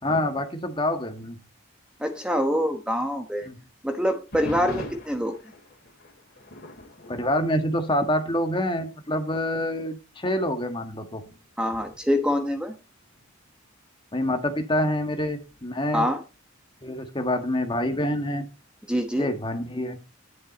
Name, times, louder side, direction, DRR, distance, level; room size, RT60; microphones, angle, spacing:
voice 1, 0.0-1.4 3.4-3.6 4.6-4.8 7.1-11.2 14.1-16.1 16.8-18.5 19.2-20.0, left 1 dB, 25° left, 6 dB, 1.7 m, -26 dB
voice 2, 2.0-3.5 3.8-5.4 11.6-12.7 15.9-16.2 18.9-19.3, equal, 5° right, 6 dB, 1.1 m, -25 dB
sound 1, 4.3-8.5 8.8-9.1 9.8-9.9 10.6-13.3 15.1-15.6, left 1 dB, 50° left, 2.9 m, -44 dB
10.5 x 10.5 x 4.2 m, 0.30 s
head